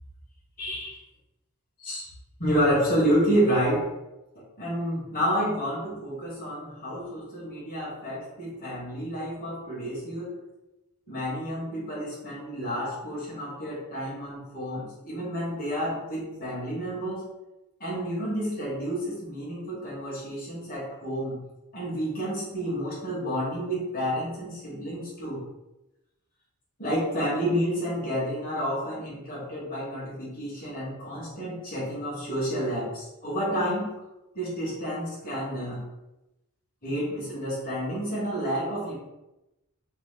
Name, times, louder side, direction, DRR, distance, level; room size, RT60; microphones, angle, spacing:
voice 1, 0.6-1.0 1.8-2.1 2.4-3.8 4.6-10.4 11.1-17.2 17.8-21.4 21.7-25.4 26.8-33.9 34.3-35.8 36.8-38.9, equal, 40° left, -6 dB, 1.0 m, -29 dB
2.7 x 2.1 x 3.2 m, 0.95 s
head